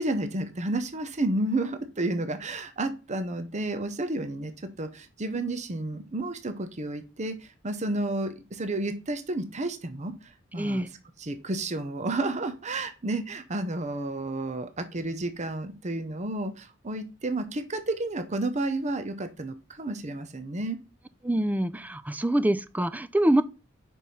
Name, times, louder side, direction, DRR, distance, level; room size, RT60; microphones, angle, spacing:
voice 1, 0.0-4.5 4.8-10.9 11.2-20.8, right 2 dB, 35° right, 0.8 m, -31 dB
voice 2, 10.6-10.9 21.2-23.4, right 1 dB, 10° right, 0.4 m, -25 dB
5.4 x 4.7 x 5.5 m
head